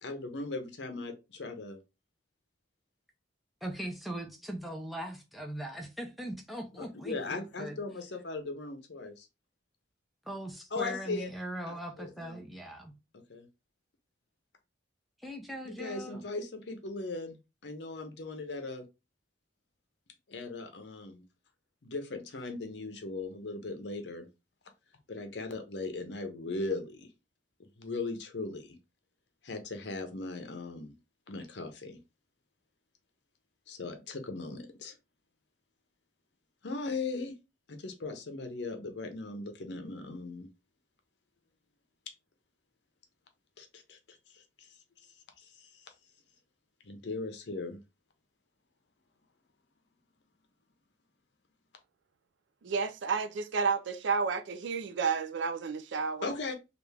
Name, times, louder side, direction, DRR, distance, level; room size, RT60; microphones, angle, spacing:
voice 1, 0.0-1.8 6.8-9.3 10.7-11.3 12.0-12.4 13.3-13.5 15.6-17.4 17.6-18.8 20.3-21.2 21.8-24.3 25.1-27.1 27.6-28.8 29.4-30.9 31.3-32.0 33.7-34.9 36.6-37.4 37.7-40.5 42.1-42.2 43.6-44.7 45.4-45.8 46.8-47.8 56.2-56.5, left 3 dB, 65° left, 0.7 m, -38 dB
voice 2, 3.6-7.8 10.3-12.9 15.2-16.3, right 1 dB, ahead, 0.6 m, -40 dB
voice 3, 52.6-56.3, right 5 dB, 70° right, 0.4 m, -31 dB
3.4 x 2.4 x 3.2 m
head